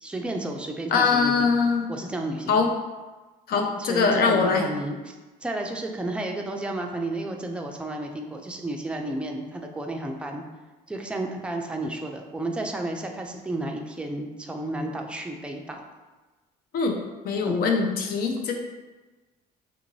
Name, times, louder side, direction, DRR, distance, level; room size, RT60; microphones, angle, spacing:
voice 1, 0.0-1.6 1.9-2.6 3.5-5.1 5.4-10.4 10.9-15.8 17.4-17.6, right 1 dB, 5° right, 2 dB, 0.4 m, -32 dB
voice 2, 0.9-1.9 2.5-2.7 3.5-4.7 16.7-17.0 17.2-18.5, left 5 dB, 65° left, 3 dB, 0.6 m, -22 dB
3.5 x 2.5 x 3.1 m, 1.2 s
cardioid pair, 110°, 17 cm